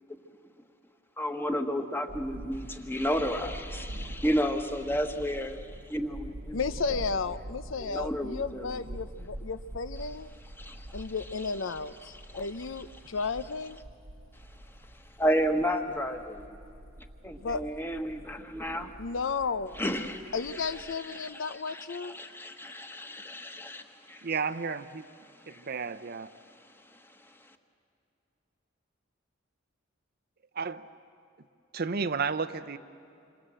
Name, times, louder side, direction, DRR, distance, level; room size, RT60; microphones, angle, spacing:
voice 1, 1.2-5.6 5.9-6.6 7.8-8.7 10.6-10.9 15.2-16.4 17.2-18.9 19.8-20.3 21.1-24.2 25.5-25.6, equal, 10° left, 6 dB, 1.4 m, -32 dB
sound 1, 2.1-20.9, right 1 dB, 90° right, 1.2 m, -45 dB
voice 2, 6.5-10.3 10.9-13.8 17.4-17.6 19.0-19.8 20.3-22.2, left 4 dB, 75° left, 13 dB, 0.7 m, -33 dB
voice 3, 24.2-24.8 25.5-26.3 30.6-30.9 31.7-32.8, right 5 dB, 50° right, 12 dB, 0.7 m, -32 dB
28.0 x 26.0 x 7.7 m, 2.6 s
head